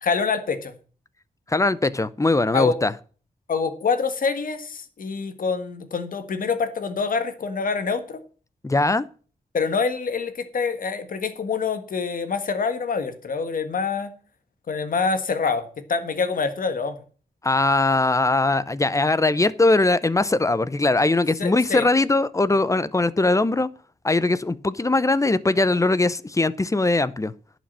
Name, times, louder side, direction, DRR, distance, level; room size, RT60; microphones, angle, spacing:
voice 1, 0.0-0.7 2.5-2.7 3.5-8.2 9.5-14.1 14.7-17.0 21.4-21.9, left 5 dB, 70° left, 1.7 m, -26 dB
voice 2, 1.5-2.9 8.6-9.1 17.4-23.7 24.0-27.3, left 2 dB, 20° left, 0.7 m, -21 dB
11.0 x 6.1 x 7.3 m
cardioid pair, 75°, 15 cm